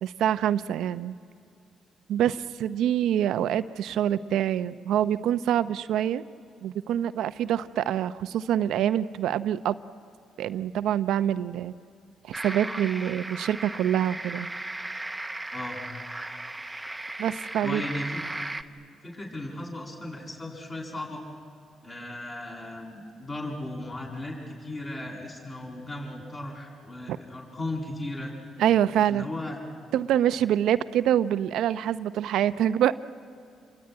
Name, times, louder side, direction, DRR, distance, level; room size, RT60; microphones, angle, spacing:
voice 1, 0.0-1.1 2.1-6.2 6.6-9.8 10.4-11.7 12.2-14.5 17.2-17.8 28.6-29.3 29.9-33.0, right 10 dB, 80° right, 13 dB, 0.6 m, -25 dB
sound 1, 12.3-18.6, right 2 dB, 10° right, 0.9 m, -36 dB
voice 2, 15.5-15.8 17.6-18.2 19.0-21.2 21.8-28.3 29.1-29.6, left 1 dB, 30° left, -1 dB, 7.4 m, -36 dB
28.0 x 22.0 x 9.5 m, 2.6 s
cardioid pair, 90°, 0 cm